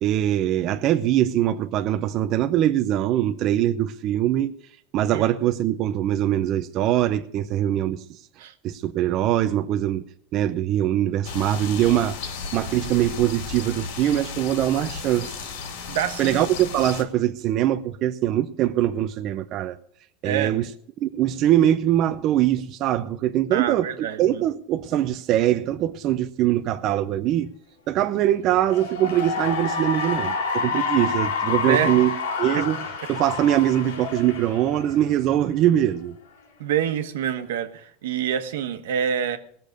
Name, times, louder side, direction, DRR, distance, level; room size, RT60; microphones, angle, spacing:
voice 1, 0.0-4.5 4.9-8.0 8.6-10.1 10.3-12.2 12.5-15.4 16.2-19.8 20.2-20.7 21.0-27.5 27.9-32.1 32.4-32.8 33.1-36.2, right 12 dB, 35° right, 0.5 m, -22 dB
sound 1, 11.2-17.0, left 5 dB, 65° left, 2.4 m, -34 dB
voice 2, 15.9-16.5 20.2-20.5 23.5-24.4 31.6-31.9 32.6-32.7 36.6-39.4, right 9 dB, 90° right, 1.3 m, -26 dB
Cheering / Applause, 28.6-35.3, left 5 dB, 90° left, 3.0 m, -28 dB
18.5 x 6.8 x 6.6 m
supercardioid pair, 160°, 0 cm